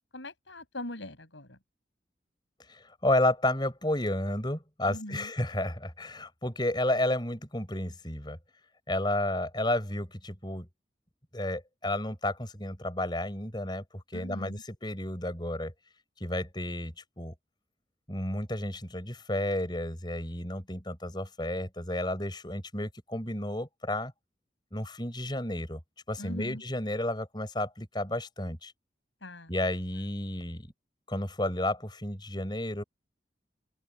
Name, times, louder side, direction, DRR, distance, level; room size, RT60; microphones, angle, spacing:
voice 1, 0.1-1.6 4.9-5.3 14.1-14.6 26.2-26.6 29.2-29.5, left 1 dB, 90° left, 7.8 m, -41 dB
voice 2, 2.7-8.4 8.9-10.7 11.3-15.7 16.2-17.3 18.1-24.1 24.7-25.8 26.1-28.7 29.5-30.7 31.1-32.8, left 1 dB, 25° left, 5.2 m, -32 dB
open air
head